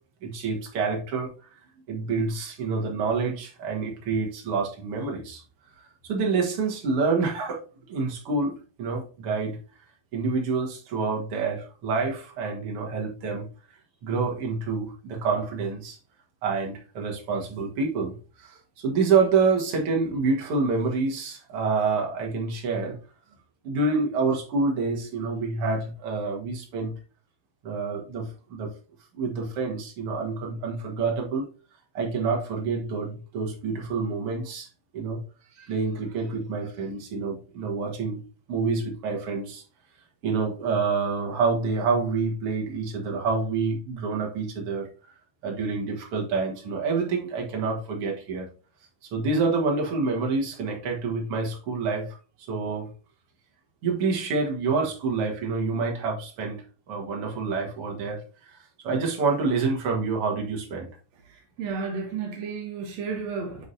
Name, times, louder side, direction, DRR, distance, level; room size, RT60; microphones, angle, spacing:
voice 1, 0.2-1.3 1.9-5.4 6.0-9.6 10.1-13.5 14.0-16.0 16.4-18.6 18.8-23.0 23.6-26.9 27.6-28.7 29.1-31.5 31.9-34.7 34.9-35.2 35.6-38.2 38.5-39.6 40.2-44.9 45.4-48.5 49.1-52.1 52.5-52.9 53.8-58.2 58.5-58.6 58.8-60.9, right 4 dB, 50° right, 2.0 m, -27 dB
voice 2, 61.2-63.7, right 5 dB, 80° right, 1.5 m, -32 dB
9.8 x 3.7 x 2.8 m
omnidirectional pair, 4.2 m